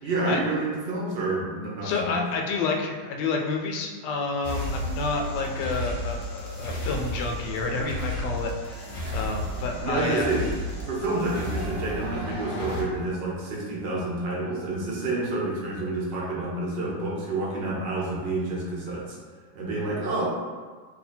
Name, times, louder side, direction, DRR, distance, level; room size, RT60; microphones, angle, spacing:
voice 1, 0.0-2.2 9.0-9.1 9.4-9.5 9.8-10.4 10.9-19.1 19.5-20.3, right 2 dB, 60° right, -4 dB, 0.6 m, -29 dB
voice 2, 1.8-10.3, left 3 dB, 80° left, 2 dB, 1.2 m, -29 dB
sound 1, 4.4-12.8, left 1 dB, 50° left, 0.8 m, -33 dB
2.8 x 2.7 x 4.2 m, 1.5 s
omnidirectional pair, 2.0 m